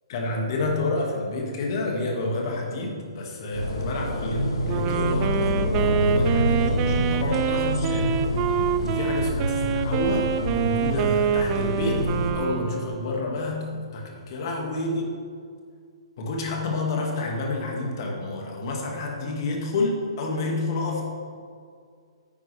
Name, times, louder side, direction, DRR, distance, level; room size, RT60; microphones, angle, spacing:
voice 1, 0.1-8.2 8.8-15.1 16.2-21.0, left 2 dB, 50° left, 0 dB, 2.1 m, -29 dB
sound 1, 3.5-12.3, equal, 65° left, 1.9 m, -27 dB
Wind instrument woodwind instrument, 4.7-13.3, right 8 dB, 30° right, 0.5 m, -26 dB
9.7 x 9.0 x 3.4 m, 2.2 s
hypercardioid pair, 130°, 3 cm